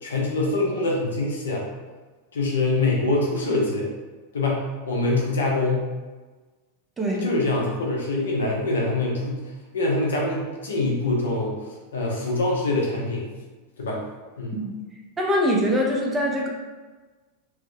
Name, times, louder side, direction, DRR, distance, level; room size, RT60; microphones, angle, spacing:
voice 1, 0.0-1.7 2.3-3.9 4.3-5.9 7.1-11.6 11.9-13.3 13.8-14.0 14.4-14.6, left 2 dB, 65° left, -2 dB, 0.5 m, -24 dB
voice 2, 7.0-7.3 14.5-14.8 15.2-16.5, equal, 15° right, -1 dB, 0.4 m, -23 dB
2.5 x 2.0 x 2.5 m, 1.3 s
figure-of-eight pair, 90°, 0 cm